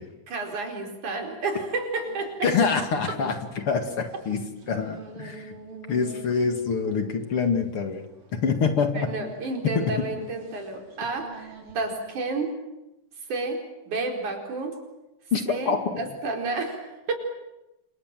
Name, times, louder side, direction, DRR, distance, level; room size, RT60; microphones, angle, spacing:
voice 1, 0.3-2.5 3.1-3.2 6.9-7.0 8.9-12.6 13.3-14.8 15.5-17.1, right 3 dB, 75° right, 3 dB, 5.9 m, -31 dB
sound 1, 2.0-12.2, right 4 dB, 45° right, 4.1 m, -48 dB
voice 2, 2.4-5.5 5.9-8.0 8.3-9.1 9.6-9.8 15.3-16.0, left 5 dB, 50° left, 7 dB, 2.6 m, -25 dB
29.5 x 26.0 x 7.6 m, 0.95 s
omnidirectional pair, 3.5 m